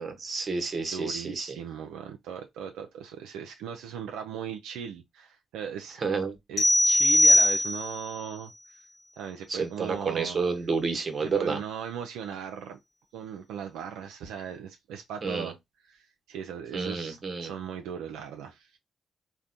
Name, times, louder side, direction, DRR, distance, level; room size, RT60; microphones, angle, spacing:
voice 1, 0.0-1.5 6.0-6.4 9.5-11.6 15.2-15.5 16.7-17.5, right 4 dB, 45° right, 0.9 m, -30 dB
voice 2, 0.8-6.0 6.5-8.8 9.2-10.4 11.2-12.8 13.1-15.6 15.9-18.8, right 8 dB, 85° right, 0.3 m, -38 dB
sound 1, 6.6-8.1, left 1 dB, 50° left, 1.0 m, -20 dB
3.3 x 2.1 x 2.5 m
supercardioid pair, 50°, 0 cm